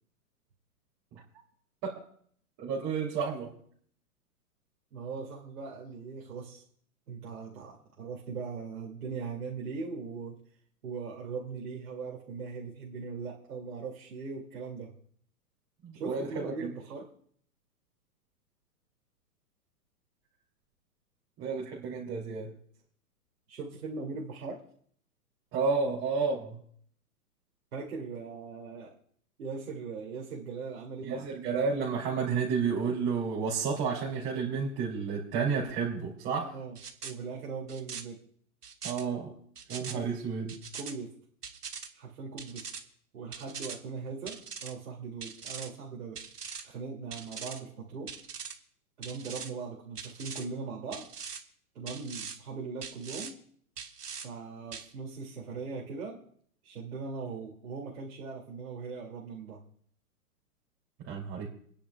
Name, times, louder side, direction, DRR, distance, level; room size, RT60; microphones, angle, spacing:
voice 1, 2.6-3.5 15.8-16.7 21.4-22.5 25.5-26.6 31.1-36.5 38.8-39.3 39.7-40.5 61.1-61.5, right 5 dB, 30° right, -4 dB, 3.0 m, -31 dB
voice 2, 4.9-6.6 7.1-10.4 10.8-14.9 15.9-17.1 23.5-24.6 27.7-28.9 29.4-31.2 36.4-36.8 37.0-38.2 39.9-40.1 40.7-41.1 41.9-42.7 43.1-46.2 46.6-48.2 49.0-51.1 51.7-53.4 54.2-56.2 56.6-59.6, right 4 dB, 70° right, -2 dB, 2.7 m, -40 dB
sound 1, 36.8-37.1 37.7-38.0 38.6-39.0 39.6-39.9 40.5-40.9 41.4-41.9 42.4-42.8 43.3-43.8 44.3-44.7 45.2-45.7 46.2-46.6 47.1-47.6 48.1-48.5 49.0-49.5 50.0-50.5 50.9-51.4 51.9-52.4 52.8-53.3 53.8-54.3 54.7-54.9, right 6 dB, 85° right, 1.5 m, -41 dB
27.5 x 10.0 x 2.4 m, 0.62 s
hypercardioid pair, 125°, 46 cm